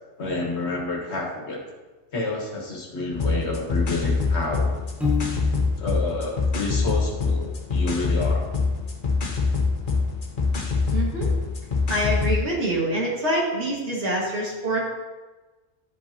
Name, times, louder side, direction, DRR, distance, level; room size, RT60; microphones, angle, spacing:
voice 1, 0.2-1.6 2.1-4.7 5.8-8.5, left 2 dB, 75° left, 0 dB, 1.6 m, -29 dB
sound 1, 3.1-12.4, left 4 dB, 50° left, 1.1 m, -25 dB
Piano, 5.0-6.0, left 5 dB, ahead, 0.9 m, -29 dB
voice 2, 10.9-11.3 11.9-14.8, right 1 dB, 85° right, -5 dB, 2.2 m, -25 dB
11.5 x 5.2 x 2.8 m, 1.2 s
omnidirectional pair, 1.1 m